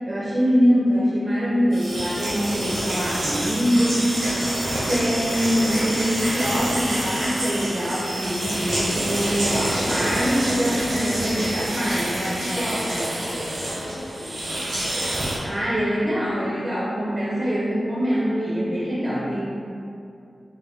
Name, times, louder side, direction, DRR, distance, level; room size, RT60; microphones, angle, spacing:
voice 1, 0.1-4.3 4.9-13.1 15.4-19.5, equal, 25° right, -6 dB, 0.4 m, -24 dB
sound 1, 1.7-15.4, right 1 dB, 85° right, 0.7 m, -27 dB
voice 2, 12.4-14.5, left 1 dB, 45° left, -9 dB, 0.5 m, -36 dB
3.5 x 2.1 x 3.3 m, 2.6 s
wide cardioid pair, 145°, 0 cm